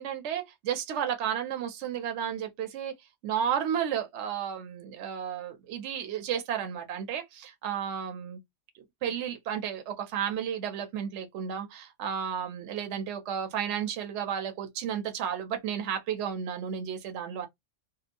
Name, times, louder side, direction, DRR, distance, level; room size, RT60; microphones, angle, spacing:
voice 1, 0.0-2.9 3.2-8.4 8.7-17.5, right 8 dB, 70° right, 0.9 m, -33 dB
2.8 x 2.0 x 2.5 m
omnidirectional pair, 1.3 m